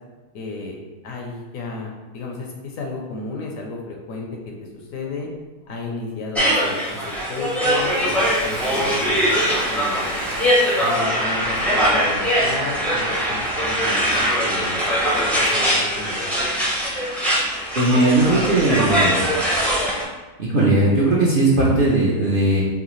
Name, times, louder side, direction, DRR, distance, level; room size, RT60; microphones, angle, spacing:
voice 1, 0.3-0.8 1.0-4.3 4.7-5.3 5.7-10.2 10.7-14.8 15.1-16.5, left 3 dB, 65° left, 0 dB, 1.0 m, -33 dB
Drill, 4.2-4.4 4.9-5.4 5.6-6.2 6.5-11.1, left 1 dB, 90° left, 2.2 m, -41 dB
sound 1, 6.3-20.0, equal, ahead, 0.4 m, -21 dB
voice 2, 17.7-19.2 20.4-22.6, right 2 dB, 50° right, -6 dB, 0.7 m, -18 dB
4.8 x 2.9 x 3.1 m, 1.2 s
omnidirectional pair, 1.7 m